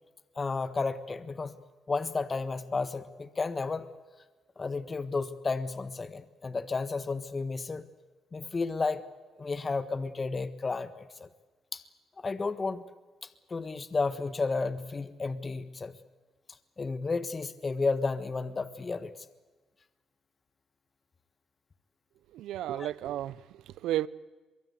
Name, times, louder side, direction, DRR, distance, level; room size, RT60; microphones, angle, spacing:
voice 1, 0.3-1.5 1.9-3.9 4.6-7.8 8.3-9.0 9.4-11.3 11.7-11.8 12.2-12.8 13.5-15.9 16.8-19.1 22.7-22.9, left 4 dB, 30° left, 1.4 m, -32 dB
voice 2, 22.3-24.1, right 13 dB, 85° right, 0.7 m, -33 dB
23.5 x 23.0 x 8.2 m
cardioid pair, 90°, 0 cm